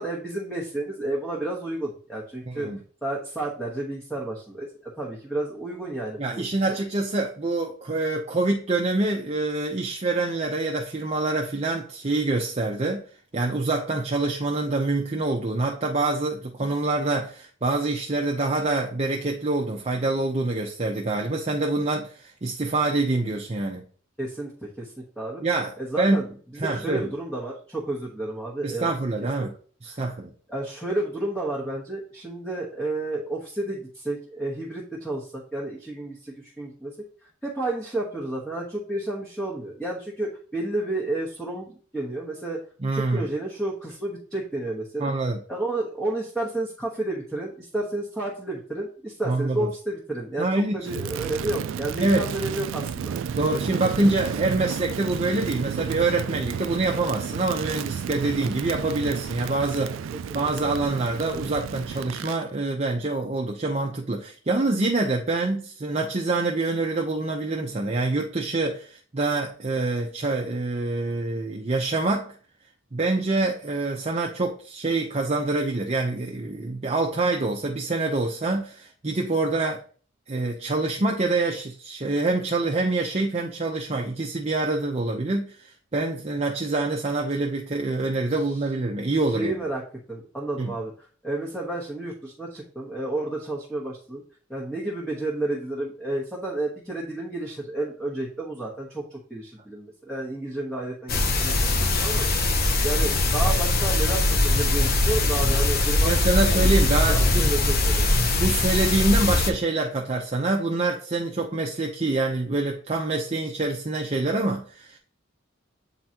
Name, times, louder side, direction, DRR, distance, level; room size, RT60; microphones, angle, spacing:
voice 1, 0.0-2.7 3.0-6.7 24.2-25.4 25.8-26.3 26.5-29.1 29.4-29.5 29.9-30.1 30.5-36.9 37.2-42.6 42.9-45.1 45.5-50.5 50.7-53.1 60.3-60.6 88.4-88.6 89.3-94.2 94.5-102.3 102.8-106.1 106.4-106.8 107.1-108.1, right 2 dB, 5° left, 1.2 m, -31 dB
voice 2, 2.5-2.8 6.2-13.0 13.3-23.8 25.4-25.7 26.0-26.3 26.6-27.1 28.6-29.5 29.8-30.3 42.8-43.3 45.0-45.4 49.3-49.7 50.4-50.7 52.0-52.3 53.3-60.0 60.3-72.3 72.9-79.8 80.3-89.5 90.6-90.7 106.0-107.5 108.4-115.0, right 2 dB, 35° right, 0.7 m, -26 dB
Crackle, 50.8-62.4, right 7 dB, 75° right, 0.3 m, -32 dB
sound 1, 101.1-109.5, left 2 dB, 50° left, 0.8 m, -21 dB
8.8 x 3.9 x 2.9 m
head